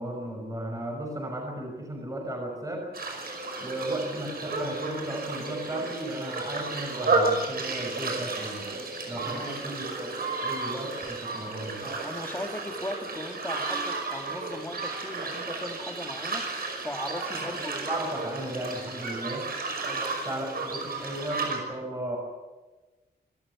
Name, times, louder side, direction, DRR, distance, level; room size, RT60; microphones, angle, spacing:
voice 1, 0.0-2.9 3.6-8.7 9.1-11.9 17.4-19.5 20.3-22.2, right 1 dB, 20° right, 0 dB, 6.2 m, -35 dB
sound 1, 2.9-21.6, right 3 dB, 65° right, 5.7 m, -32 dB
voice 2, 9.2-9.9 11.8-16.5 16.8-17.9 19.8-20.4, left 1 dB, 15° left, 5 dB, 2.1 m, -38 dB
26.0 x 14.5 x 9.8 m, 1.2 s
wide cardioid pair, 180°, 17 cm